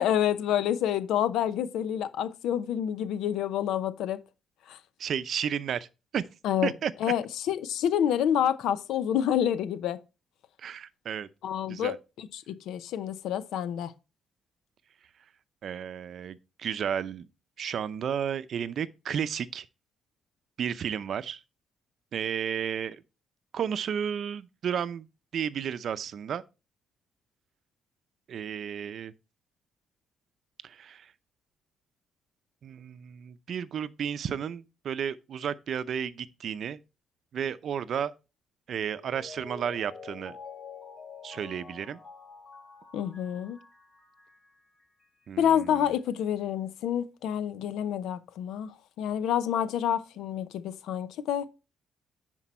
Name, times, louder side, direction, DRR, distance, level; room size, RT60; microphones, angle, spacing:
voice 1, 0.0-4.2 4.7-4.8 6.4-6.7 7.0-10.0 11.4-13.9 42.9-43.6 45.4-51.5, left 10 dB, 85° left, 0.6 m, -28 dB
voice 2, 5.0-5.9 6.1-6.3 6.6-6.9 10.6-11.3 11.7-12.0 15.6-17.3 17.6-19.7 20.6-21.4 22.1-23.0 23.5-25.1 25.3-26.4 28.3-29.1 30.6-31.1 32.6-36.8 37.3-38.1 38.7-40.4 41.2-42.0 45.3-45.5, right 8 dB, 60° right, 0.6 m, -32 dB
Mallet percussion, 38.9-44.5 44.8-44.9, left 4 dB, 40° left, 2.0 m, -47 dB
10.0 x 4.5 x 4.3 m
cardioid pair, 90°, 0 cm